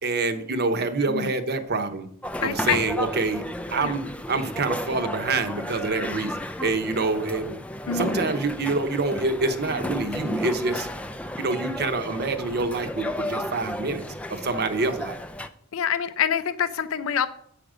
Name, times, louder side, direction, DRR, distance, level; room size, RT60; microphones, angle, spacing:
voice 1, 0.0-2.1 2.4-3.4 3.7-4.0 4.3-7.5 7.9-10.9 11.4-14.0 14.3-15.2, right 3 dB, 50° right, 8 dB, 0.9 m, -26 dB
sound 1, 2.2-15.5, equal, 5° left, 0.4 m, -33 dB
voice 2, 2.4-2.8 3.7-3.9 7.9-8.2 15.7-17.3, left 8 dB, 70° left, 12 dB, 0.5 m, -26 dB
8.4 x 5.1 x 6.1 m, 0.65 s
head